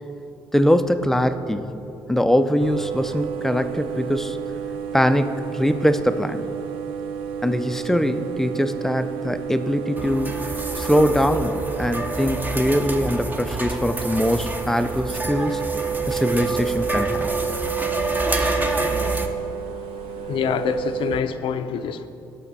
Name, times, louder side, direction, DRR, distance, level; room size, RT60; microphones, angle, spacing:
voice 1, 0.5-1.7 2.1-4.4 4.9-6.5 7.4-10.4 10.8-15.6 16.1-17.3, equal, 5° left, 9 dB, 0.5 m, -22 dB
sound 1, 2.6-21.2, right 8 dB, 85° right, 0.6 m, -30 dB
sound 2, 10.0-19.3, right 1 dB, 20° right, 0.9 m, -28 dB
voice 2, 20.2-22.1, left 7 dB, 70° left, 10 dB, 0.6 m, -26 dB
17.0 x 6.4 x 4.1 m, 2.9 s
cardioid pair, 95°, 9 cm